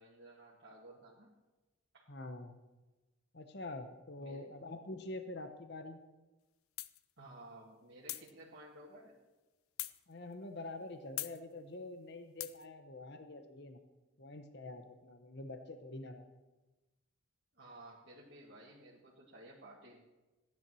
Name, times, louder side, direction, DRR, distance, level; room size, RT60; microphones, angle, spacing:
voice 1, 0.0-1.3 1.9-2.1 4.2-4.5 7.2-9.2 17.5-20.0, right 1 dB, 55° right, -4 dB, 2.0 m, -55 dB
voice 2, 2.1-2.6 3.3-6.0 10.1-13.8 14.2-16.3, left 2 dB, 50° left, 7 dB, 1.0 m, -46 dB
sound 1, 6.8-7.0 8.1-8.3 9.8-10.0 11.2-11.4 12.4-12.6, left 16 dB, 90° left, 0.6 m, -40 dB
15.5 x 10.5 x 6.3 m, 1.1 s
head